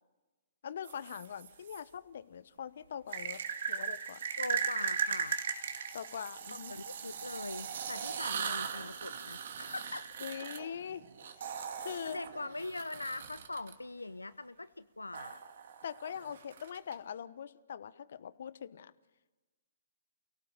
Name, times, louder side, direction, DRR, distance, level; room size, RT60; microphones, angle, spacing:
voice 1, 0.6-3.4 3.7-4.2 5.9-6.7 8.3-8.6 10.2-11.0 11.8-12.2 15.8-18.9, left 8 dB, 60° left, 17 dB, 1.1 m, -42 dB
sound 1, 0.8-1.8 3.1-13.7 15.1-16.9, right 7 dB, 60° right, 2.5 m, -38 dB
voice 2, 4.4-5.4 6.5-10.1 12.0-15.4, left 2 dB, 90° left, 14 dB, 0.7 m, -42 dB
29.5 x 17.5 x 7.4 m, 1.2 s
figure-of-eight pair, 125°, 0 cm